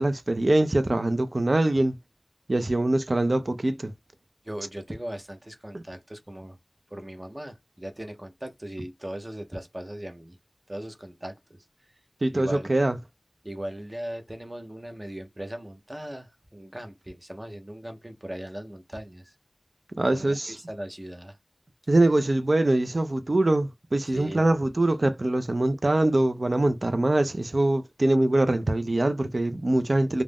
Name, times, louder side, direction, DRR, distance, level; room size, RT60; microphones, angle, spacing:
voice 1, 0.0-1.9 2.5-3.9 5.7-5.8 12.2-12.9 20.0-20.6 21.9-30.2, right 2 dB, 60° right, 0.4 m, -23 dB
voice 2, 4.4-6.6 6.9-10.4 10.7-11.6 12.3-12.7 13.4-19.3 20.1-21.4 24.1-24.5, right 1 dB, 30° right, 0.7 m, -38 dB
2.4 x 2.1 x 3.4 m
wide cardioid pair, 40°, 0 cm